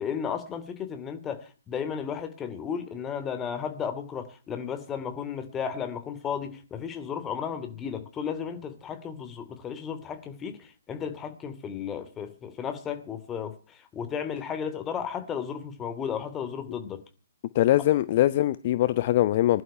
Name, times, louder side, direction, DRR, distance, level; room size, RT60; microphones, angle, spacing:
voice 1, 0.0-17.0, left 7 dB, 20° left, 2.8 m, -34 dB
voice 2, 17.5-19.6, left 14 dB, 45° left, 0.8 m, -22 dB
21.0 x 11.5 x 5.7 m
figure-of-eight pair, 130°, 0 cm